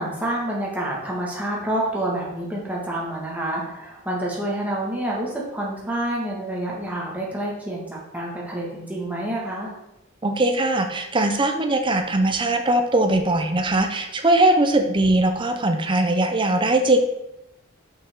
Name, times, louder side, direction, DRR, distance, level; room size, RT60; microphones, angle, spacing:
voice 1, 0.0-9.7, right 1 dB, 10° right, -4 dB, 1.7 m, -28 dB
voice 2, 10.2-17.0, right 2 dB, 25° right, 6 dB, 0.6 m, -20 dB
6.0 x 5.5 x 3.7 m, 0.89 s
head